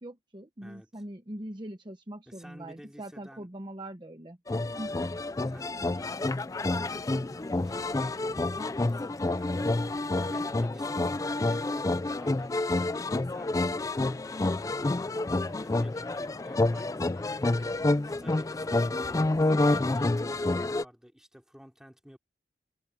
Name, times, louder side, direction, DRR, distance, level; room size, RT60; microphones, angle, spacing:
voice 1, 0.0-4.4 4.8-5.0, right 1 dB, 25° right, 1.0 m, -42 dB
voice 2, 0.6-1.0 2.3-3.5 5.5-15.0 15.5-22.2, equal, 5° right, 3.0 m, -52 dB
sound 1, 4.5-20.8, left 2 dB, 20° left, 0.4 m, -28 dB
head